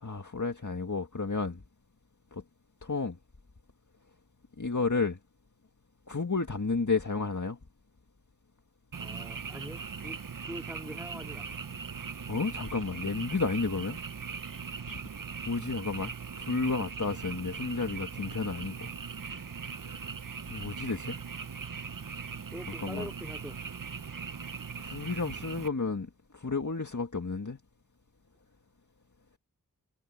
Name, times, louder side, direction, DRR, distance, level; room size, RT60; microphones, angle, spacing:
voice 1, 0.0-1.6 2.3-2.4 2.8-3.2 4.6-5.2 6.1-7.6 12.3-14.0 14.9-15.0 15.5-18.9 19.8-20.1 20.5-21.2 22.8-23.1 24.8-27.6, left 4 dB, 55° left, 1.9 m, -32 dB
Frog, 8.9-25.7, right 5 dB, 60° right, 0.8 m, -40 dB
voice 2, 9.0-11.7 22.5-23.6, equal, 5° right, 2.2 m, -44 dB
wide cardioid pair, 50°, 36 cm